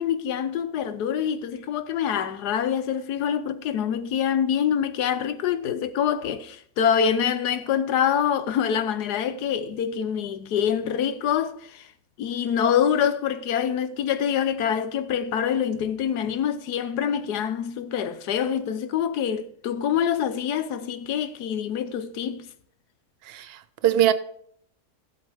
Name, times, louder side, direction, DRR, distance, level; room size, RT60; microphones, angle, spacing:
voice 1, 0.0-11.9 12.2-22.5, left 8 dB, 85° left, 1.4 m, -25 dB
voice 2, 23.3-24.1, right 11 dB, 90° right, 0.5 m, -22 dB
16.5 x 7.9 x 3.5 m
omnidirectional pair, 1.7 m